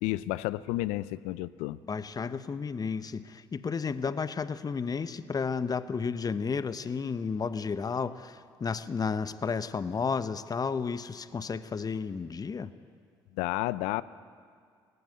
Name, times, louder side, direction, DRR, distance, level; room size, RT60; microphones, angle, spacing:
voice 1, 0.0-1.8 13.3-14.0, left 17 dB, 75° left, 18 dB, 0.6 m, -31 dB
voice 2, 1.9-12.7, left 5 dB, 35° left, 13 dB, 0.9 m, -32 dB
18.0 x 16.0 x 9.4 m, 2.1 s
hypercardioid pair, 60°, 12 cm